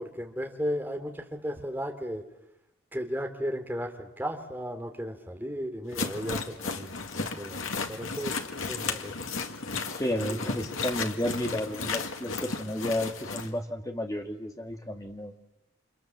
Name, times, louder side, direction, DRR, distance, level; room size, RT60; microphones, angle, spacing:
voice 1, 0.0-2.2 2.9-8.3 8.7-9.1 10.0-10.4, equal, 10° right, 3 dB, 2.9 m, -35 dB
sound 1, 5.9-13.5, left 4 dB, 85° left, 2.2 m, -34 dB
voice 2, 9.9-15.3, left 1 dB, 15° left, 3 dB, 2.2 m, -32 dB
29.5 x 26.0 x 7.5 m, 0.88 s
head